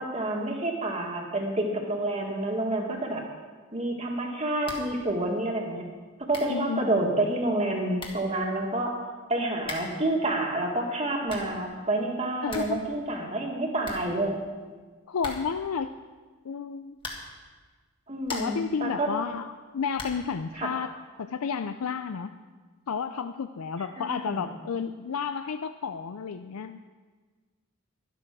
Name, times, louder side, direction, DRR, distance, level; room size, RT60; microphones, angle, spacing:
voice 1, 0.0-3.2 3.7-5.9 6.3-9.0 9.3-14.4 18.1-19.1 20.6-20.7 23.9-24.4, right 1 dB, 30° right, 1 dB, 1.8 m, -28 dB
sound 1, 4.6-5.0 5.3-5.4 6.0-6.1 6.3-6.6 7.6-7.7 8.0-8.3 9.6-10.1 11.0-11.6 12.0-12.1 12.3-12.8 13.1-13.2 13.5-13.6 13.8-14.6 15.2-15.7 17.0-17.5 17.9-18.7 19.9-20.3, left 2 dB, 25° left, 1.7 m, -40 dB
voice 2, 6.5-6.9 12.4-12.8 15.1-15.9 16.4-17.0 18.3-20.9 21.2-22.3 22.9-26.8, left 6 dB, 80° left, 9 dB, 0.5 m, -31 dB
12.5 x 11.5 x 6.1 m, 1.4 s
head